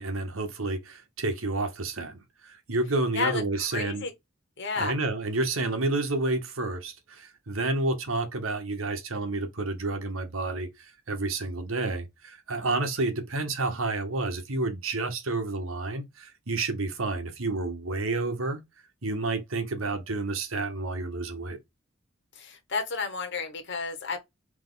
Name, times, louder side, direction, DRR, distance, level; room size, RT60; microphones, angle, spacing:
voice 1, 0.0-4.1 4.8-10.7 11.1-18.6 19.0-21.6, right 2 dB, 85° right, 1.1 m, -30 dB
voice 2, 3.1-4.1 4.6-4.9 22.3-24.2, left 4 dB, 60° left, 1.3 m, -31 dB
3.6 x 2.9 x 3.8 m
head